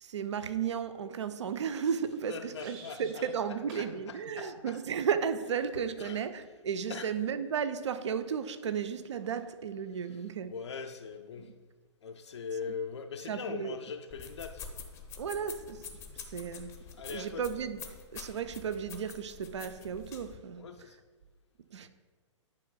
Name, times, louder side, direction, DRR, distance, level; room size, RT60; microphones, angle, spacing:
voice 1, 0.0-10.5 11.4-11.5 13.3-13.8 15.2-15.8 16.3-16.7 17.1-17.8 18.1-20.6 21.7-21.9, right 7 dB, 65° right, 11 dB, 0.4 m, -34 dB
sound 1, 1.5-3.4 3.7-3.9 4.4-4.6, right 3 dB, 30° right, 1.0 m, -53 dB
voice 2, 2.3-4.8 6.0-6.2 6.9-7.1 10.4-11.5 12.0-14.7 17.0-17.4 20.5-21.0, left 6 dB, 65° left, 5 dB, 0.4 m, -41 dB
sound 2, 14.1-20.4, left 6 dB, 15° left, 0.6 m, -47 dB
10.5 x 5.3 x 2.2 m, 1.4 s
figure-of-eight pair, 115°, 16 cm